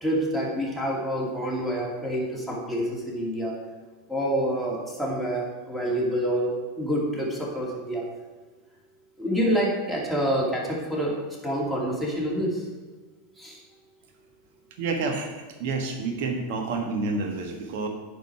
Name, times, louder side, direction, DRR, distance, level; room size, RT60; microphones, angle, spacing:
voice 1, 0.0-3.5 4.1-8.0 9.2-12.6 13.4-13.6, equal, 5° right, -4 dB, 2.7 m, -27 dB
voice 2, 14.8-15.3 15.6-17.9, right 3 dB, 60° right, 3 dB, 1.4 m, -28 dB
9.4 x 5.2 x 4.7 m, 1.4 s
hypercardioid pair, 85°, 0 cm